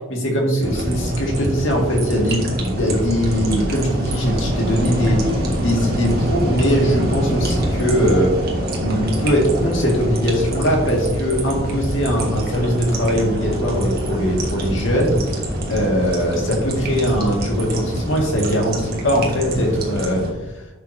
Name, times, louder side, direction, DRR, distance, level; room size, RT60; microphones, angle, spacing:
voice 1, 0.1-8.5 8.8-15.2 15.7-20.6, equal, 65° left, 0 dB, 2.0 m, -21 dB
sound 1, 0.6-20.3, equal, 45° right, 1.6 m, -25 dB
11.0 x 6.6 x 2.7 m, 1.1 s
head